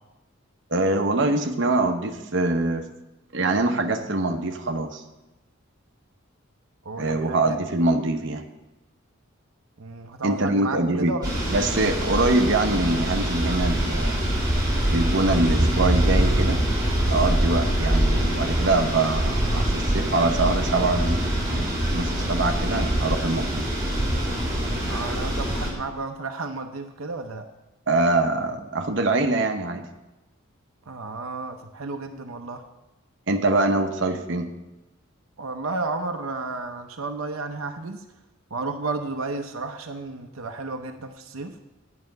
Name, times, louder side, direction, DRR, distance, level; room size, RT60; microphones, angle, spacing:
voice 1, 0.7-2.9 3.3-5.0 7.0-8.4 10.2-11.2 11.5-14.1 14.9-16.6 17.1-21.2 21.5-23.7 27.9-29.9 33.3-34.5, right 2 dB, 60° right, 4 dB, 0.9 m, -24 dB
voice 2, 6.8-7.6 9.8-11.4 24.9-27.5 30.9-32.6 35.4-38.0 38.5-41.5, right 3 dB, 90° right, 5 dB, 0.7 m, -32 dB
sound 1, 11.2-25.7, right 1 dB, 20° right, 2.6 m, -24 dB
9.6 x 5.8 x 7.7 m, 1.0 s
head